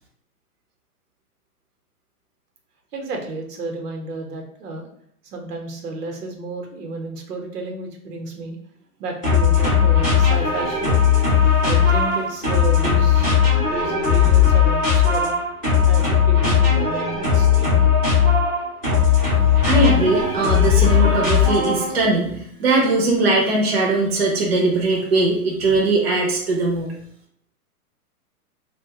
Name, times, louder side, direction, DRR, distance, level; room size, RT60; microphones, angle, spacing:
voice 1, 2.9-4.9 5.2-8.6 9.0-15.3 15.8-17.8, right 2 dB, 90° right, 2 dB, 0.9 m, -32 dB
sound 1, 9.2-22.0, left 7 dB, 5° right, 0.6 m, -17 dB
voice 2, 19.6-26.9, right 2 dB, 45° right, -2 dB, 0.6 m, -20 dB
2.5 x 2.2 x 2.8 m, 0.65 s
hypercardioid pair, 180°, 46 cm